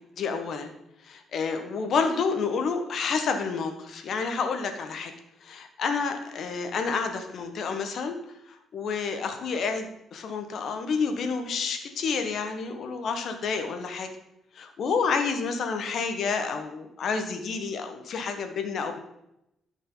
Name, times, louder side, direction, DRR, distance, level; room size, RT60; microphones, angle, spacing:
voice 1, 0.2-0.7 1.0-5.1 5.4-8.1 8.7-14.1 14.5-19.0, left 5 dB, 60° left, 6 dB, 1.3 m, -29 dB
13.5 x 5.3 x 4.0 m, 0.83 s
cardioid pair, 90°, 0 cm